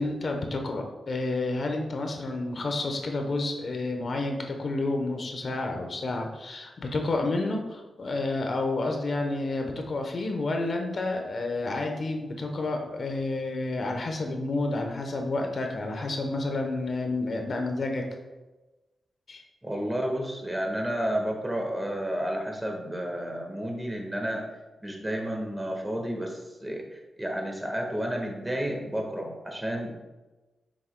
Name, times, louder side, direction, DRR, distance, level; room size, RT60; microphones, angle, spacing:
voice 1, 0.0-18.1 19.3-19.4, left 2 dB, 55° left, 3 dB, 0.9 m, -30 dB
voice 2, 19.6-24.4 24.8-29.9, equal, 10° right, 1 dB, 1.5 m, -31 dB
7.6 x 6.3 x 2.2 m, 1.1 s
cardioid pair, 70°, 0 cm